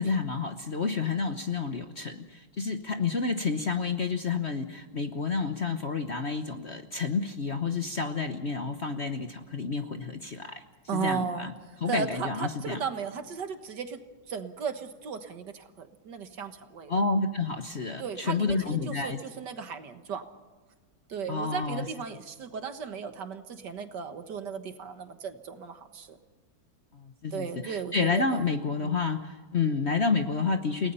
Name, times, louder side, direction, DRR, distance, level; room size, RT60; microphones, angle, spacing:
voice 1, 0.0-10.6 10.9-11.5 11.8-12.8 16.9-19.2 21.3-21.8 26.9-30.9, left 4 dB, 40° left, 7 dB, 1.1 m, -29 dB
voice 2, 10.9-14.0 14.3-16.9 18.0-20.3 21.1-26.2 27.3-28.4 28.8-28.9, right 6 dB, 60° right, 8 dB, 1.9 m, -36 dB
30.0 x 18.5 x 5.6 m, 1.4 s
omnidirectional pair, 2.1 m